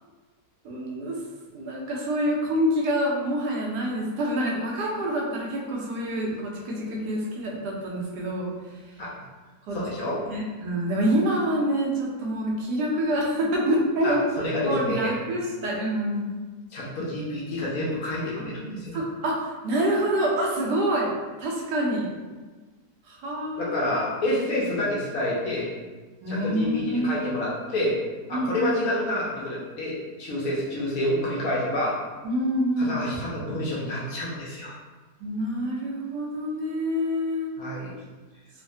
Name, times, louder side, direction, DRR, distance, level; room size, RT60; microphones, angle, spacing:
voice 1, 0.6-1.2 1.5-8.5 9.7-9.8 10.3-14.2 14.7-16.3 18.9-21.1 21.4-22.1 23.1-23.7 26.2-27.4 28.3-28.7 32.2-33.4 35.2-37.5, equal, 80° right, -2 dB, 1.2 m, -26 dB
voice 2, 9.7-10.2 14.0-15.1 16.7-19.0 23.6-25.7 26.3-28.0 28.3-31.9 32.8-34.8 37.6-37.9, left 1 dB, 70° left, -5 dB, 1.0 m, -28 dB
3.1 x 2.1 x 2.6 m, 1.3 s
omnidirectional pair, 1.8 m